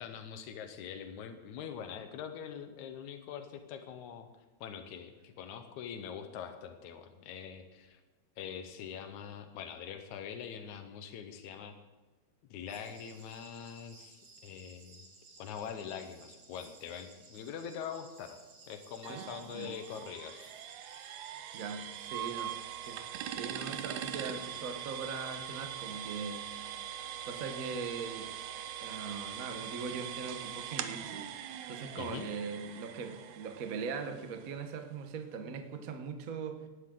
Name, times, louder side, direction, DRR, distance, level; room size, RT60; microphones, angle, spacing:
voice 1, 0.0-4.3 4.6-8.0 8.4-11.7 12.5-15.1 15.4-18.4 18.7-20.5 32.0-32.3, left 8 dB, 85° left, 7 dB, 2.3 m, -43 dB
sound 1, 12.7-24.7, right 3 dB, 40° right, 2.3 m, -57 dB
sound 2, 19.0-34.7, right 10 dB, 90° right, 2.2 m, -42 dB
voice 2, 19.1-19.7 21.5-23.0 23.3-26.6 27.2-28.3 28.8-31.3 31.7-36.6, right 5 dB, 55° right, 6 dB, 0.9 m, -40 dB
17.0 x 11.5 x 3.8 m, 1.3 s
omnidirectional pair, 3.3 m